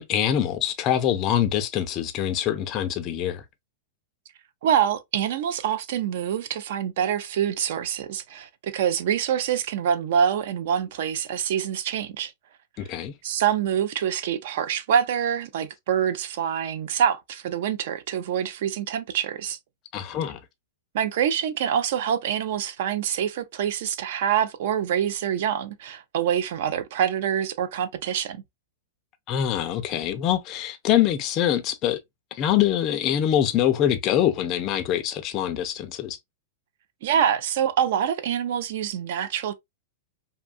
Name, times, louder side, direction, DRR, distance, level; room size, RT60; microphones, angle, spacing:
voice 1, 0.0-3.4 12.8-13.1 19.9-20.4 29.3-32.0 32.3-36.2, left 10 dB, 30° left, 0.4 m, -24 dB
voice 2, 4.6-12.3 13.2-19.6 20.9-28.4 37.0-39.5, right 9 dB, 55° right, 0.4 m, -25 dB
2.6 x 2.2 x 2.4 m
supercardioid pair, 160°, 0 cm